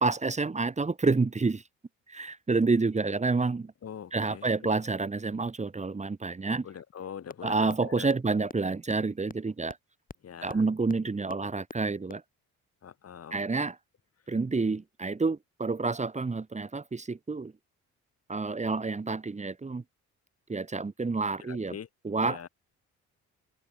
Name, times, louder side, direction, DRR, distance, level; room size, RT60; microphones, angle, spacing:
voice 1, 0.0-1.6 2.1-3.7 4.1-6.7 7.4-9.8 10.4-12.2 13.3-13.8 14.3-17.5 18.3-19.8 20.5-21.8 22.0-22.5, right 3 dB, 25° right, 2.0 m, -29 dB
voice 2, 3.8-4.5 6.6-8.1 10.2-10.6 12.8-13.4 21.4-21.9 22.2-22.5, left 8 dB, 55° left, 3.8 m, -43 dB
sound 1, 7.3-7.4 7.7-7.8 8.1-8.2 8.5-8.6 8.9-9.0 9.3-9.4 9.7-9.8 10.1-10.2 10.5-10.6 10.9-11.0 11.3-11.4 11.7-11.8 12.1-12.2, left 4 dB, 30° left, 4.8 m, -41 dB
open air
cardioid pair, 90°, 30 cm